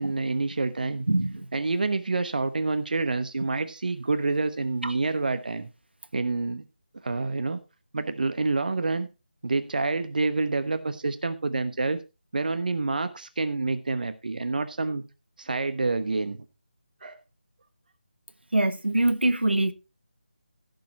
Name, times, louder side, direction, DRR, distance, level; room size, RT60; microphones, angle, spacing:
voice 1, 0.0-1.1 1.5-5.7 6.1-6.6 7.0-7.6 7.9-9.1 9.4-12.0 12.3-15.0 15.4-16.4 17.0-17.2, right 3 dB, 55° right, 1.1 m, -27 dB
voice 2, 1.1-1.5 4.8-4.9 18.5-19.7, right 2 dB, 75° right, 1.3 m, -23 dB
16.0 x 6.9 x 4.1 m
figure-of-eight pair, 160°, 6 cm